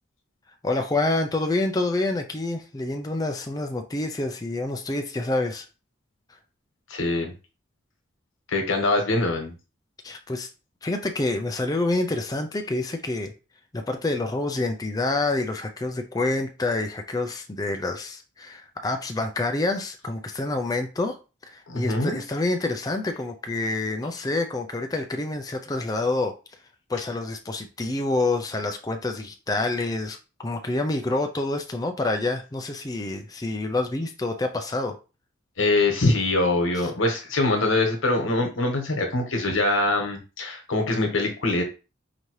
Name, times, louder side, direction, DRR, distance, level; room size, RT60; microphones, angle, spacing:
voice 1, 0.6-5.7 10.0-10.5 10.8-13.3 13.7-21.2 21.4-26.3 26.9-35.0 36.7-36.9, left 2 dB, 20° left, 0.4 m, -27 dB
voice 2, 6.9-7.3 8.5-9.5 21.7-22.2 35.6-41.6, left 2 dB, 85° left, 1.2 m, -23 dB
5.0 x 2.7 x 3.1 m
head